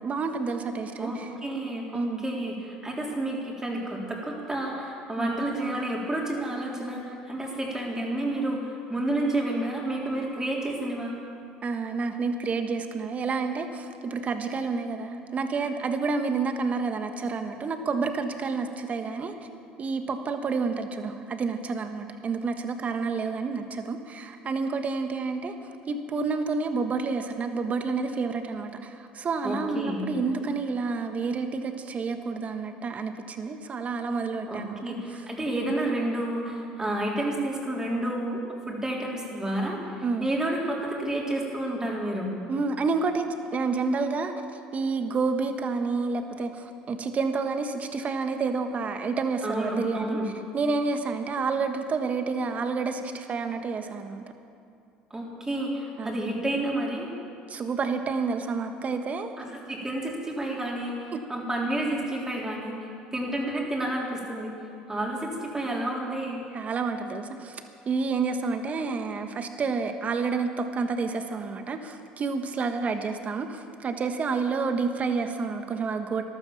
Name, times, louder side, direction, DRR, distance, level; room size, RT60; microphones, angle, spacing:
voice 1, 0.0-1.3 1.9-2.2 5.2-5.3 11.6-19.3 19.8-25.5 25.9-35.0 40.0-40.3 42.5-44.4 44.7-50.2 50.5-54.2 56.0-56.2 57.5-59.3 61.1-61.2 66.5-76.2, right 4 dB, 40° right, 7 dB, 1.4 m, -29 dB
voice 2, 1.0-11.1 29.4-30.1 34.5-38.4 38.7-42.3 49.4-50.3 55.1-57.1 59.4-64.5 64.9-66.4, right 1 dB, 15° right, -2 dB, 3.9 m, -30 dB
13.5 x 12.0 x 7.3 m, 2.5 s
supercardioid pair, 75°, 4 cm